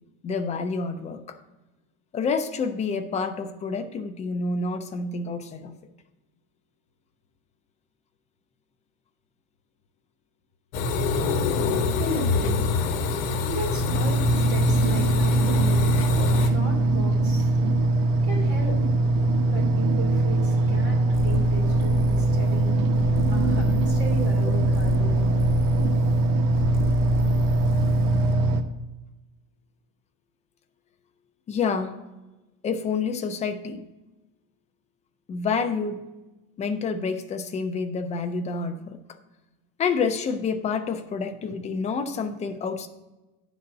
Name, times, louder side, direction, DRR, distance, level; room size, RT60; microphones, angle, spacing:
voice 1, 0.2-1.4 2.1-5.7 31.5-32.0 32.6-33.8 35.3-36.0 36.6-39.0 39.8-42.9, left 5 dB, 15° left, 0.4 m, -28 dB
sound 1, 10.7-16.5, left 4 dB, 65° left, 1.1 m, -26 dB
voice 2, 11.5-22.9 23.3-25.4, right 1 dB, 30° right, 3.0 m, -36 dB
sound 2, 13.9-28.6, right 2 dB, 85° right, 1.1 m, -22 dB
sound 3, 21.1-28.4, left 4 dB, 40° left, 1.1 m, -32 dB
9.8 x 4.1 x 6.5 m
supercardioid pair, 150°, 42 cm